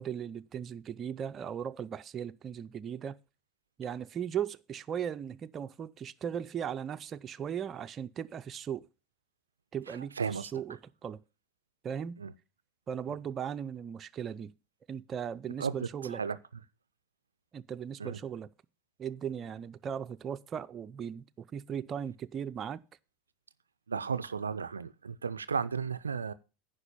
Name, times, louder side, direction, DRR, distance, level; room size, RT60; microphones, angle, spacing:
voice 1, 0.0-3.2 3.8-8.9 9.7-11.2 11.8-12.2 12.9-14.5 14.9-16.2 17.5-18.5 19.0-22.8, right 8 dB, 35° right, 0.5 m, -37 dB
voice 2, 9.9-10.5 12.2-12.3 15.6-15.8 16.1-16.4 18.0-18.2 23.9-26.3, right 6 dB, 85° right, 0.4 m, -34 dB
9.9 x 5.3 x 6.9 m
hypercardioid pair, 80°, 0 cm